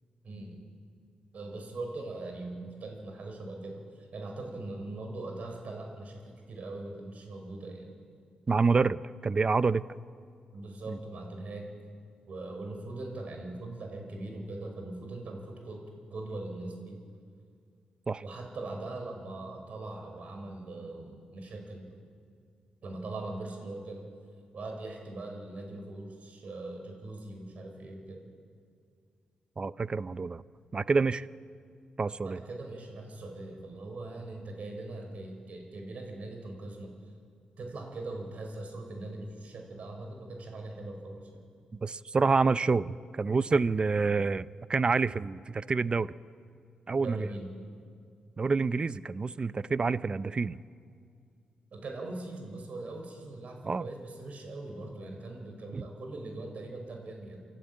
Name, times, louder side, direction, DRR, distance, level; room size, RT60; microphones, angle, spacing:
voice 1, 0.2-0.6 1.3-7.9 10.5-11.7 12.3-15.8 16.1-17.0 18.2-21.9 22.8-24.0 24.5-28.2 32.2-36.9 37.6-41.4 47.0-47.5 51.7-57.4, right 2 dB, 60° right, 2 dB, 5.4 m, -41 dB
voice 2, 8.5-9.8 10.9-11.0 18.1-18.2 29.6-30.4 30.7-31.3 32.0-32.4 41.8-46.1 46.9-47.3 48.4-50.6 53.6-53.9 55.7-55.8, right 4 dB, 35° right, 17 dB, 0.5 m, -27 dB
28.5 x 12.0 x 8.8 m, 2.2 s
cardioid pair, 75°, 3 cm